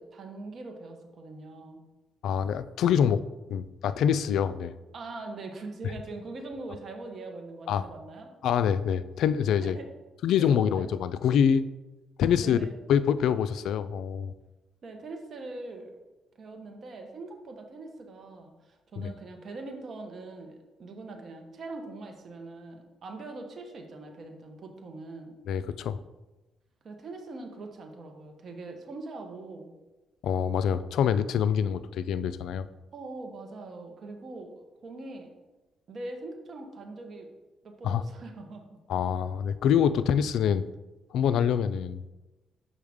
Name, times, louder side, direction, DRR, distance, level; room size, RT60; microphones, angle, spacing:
voice 1, 0.0-1.8 4.9-8.3 9.6-9.9 10.4-10.9 12.4-12.7 14.8-15.9 16.4-25.4 26.8-29.7 32.9-34.5 34.8-35.3 35.9-37.3 37.6-38.8, right 2 dB, 50° right, 3 dB, 1.1 m, -42 dB
voice 2, 2.2-3.2 3.5-4.7 7.7-7.9 8.4-9.8 10.2-11.6 12.2-12.6 12.9-14.3 19.0-19.1 25.5-26.0 30.2-32.7 37.8-38.0 38.9-40.6 41.1-42.1, left 8 dB, 80° left, 14 dB, 0.3 m, -25 dB
6.3 x 5.5 x 3.5 m, 1.1 s
cardioid pair, 90°, 0 cm